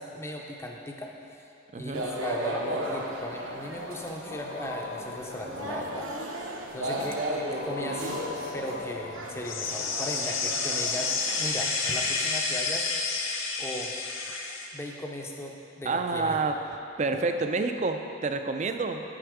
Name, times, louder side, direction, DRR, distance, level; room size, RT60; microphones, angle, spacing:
voice 1, 0.0-1.4 1.7-6.1 6.7-8.2 8.5-12.9 13.6-14.0 14.7-16.4, left 1 dB, 15° left, 1 dB, 0.6 m, -37 dB
voice 2, 1.7-2.1 15.8-16.6 17.0-19.0, right 3 dB, 35° right, 6 dB, 0.4 m, -28 dB
sound 1, 1.9-11.5, right 1 dB, 85° right, 1.0 m, -35 dB
sound 2, 2.5-10.0, left 3 dB, 60° left, 0.4 m, -42 dB
sound 3, 9.4-14.7, left 4 dB, 75° left, 0.8 m, -30 dB
7.9 x 7.2 x 4.9 m, 2.8 s
head